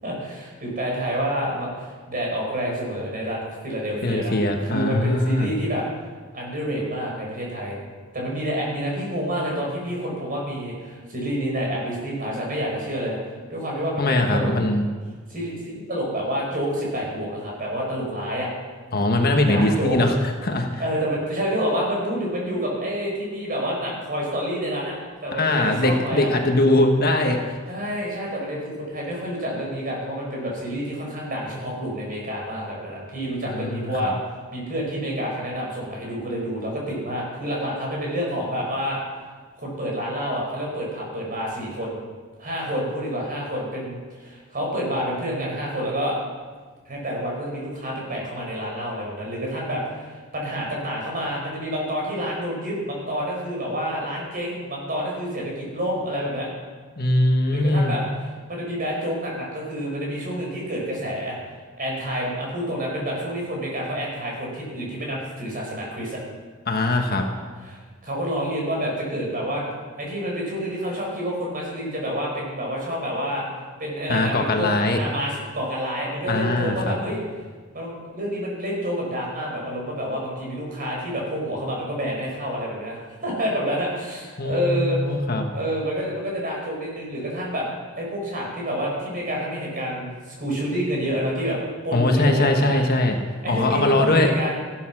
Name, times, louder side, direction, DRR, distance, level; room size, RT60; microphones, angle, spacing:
voice 1, 0.0-4.4 4.6-5.8 6.3-7.8 8.1-13.2 13.5-14.5 15.3-18.5 19.5-20.0 20.8-26.3 27.7-34.1 34.5-39.0 39.6-42.0 42.4-46.2 46.9-56.5 57.5-58.0 58.5-61.4 61.8-66.2 67.7-69.6 70.0-73.4 73.8-77.2 77.7-85.0 85.5-87.7 88.0-91.6 91.8-92.8 93.4-94.6, equal, 45° right, -2 dB, 5.4 m, -28 dB
voice 2, 4.0-5.5 14.0-14.8 18.9-20.8 25.4-27.6 33.5-34.1 57.0-57.9 66.7-67.3 74.1-75.0 76.3-76.9 84.4-85.5 91.9-93.2 93.5-94.3, left 1 dB, 45° left, 3 dB, 1.5 m, -21 dB
14.5 x 12.5 x 6.2 m, 1.5 s
head